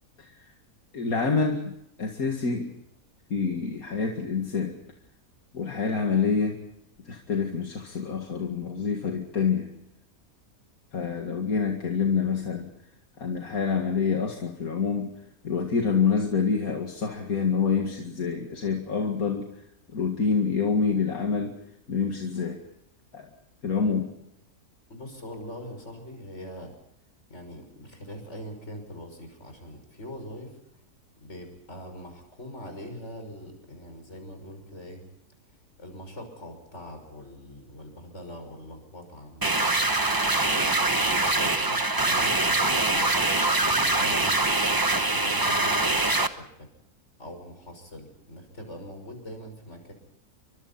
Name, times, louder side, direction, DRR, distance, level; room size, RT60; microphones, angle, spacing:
voice 1, 0.9-2.8 3.3-4.8 5.5-6.6 7.0-9.7 10.9-12.7 13.2-15.2 15.4-19.5 19.9-21.6 21.9-22.6 23.1-23.3 23.6-24.1, left 5 dB, 75° left, 2 dB, 2.5 m, -27 dB
voice 2, 24.9-26.7 27.3-30.6 31.2-35.0 35.8-39.7 40.4-43.1 43.6-44.4 44.9-46.7 47.2-49.9, equal, 50° left, 5 dB, 6.6 m, -42 dB
sound 1, 39.4-46.3, right 2 dB, 15° right, 0.9 m, -23 dB
29.5 x 24.5 x 4.2 m, 0.77 s
omnidirectional pair, 1.5 m